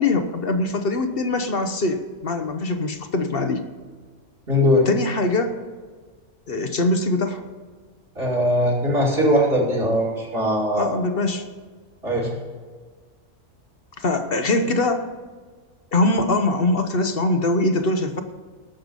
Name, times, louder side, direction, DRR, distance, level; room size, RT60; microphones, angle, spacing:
voice 1, 0.0-3.7 4.9-5.6 6.5-7.4 10.7-11.4 14.0-15.1 15.9-18.2, left 2 dB, 45° left, 7 dB, 1.1 m, -22 dB
voice 2, 4.5-4.9 8.1-10.9 12.0-12.3, equal, 40° right, -3 dB, 2.9 m, -20 dB
18.5 x 6.8 x 5.4 m, 1.5 s
omnidirectional pair, 1.5 m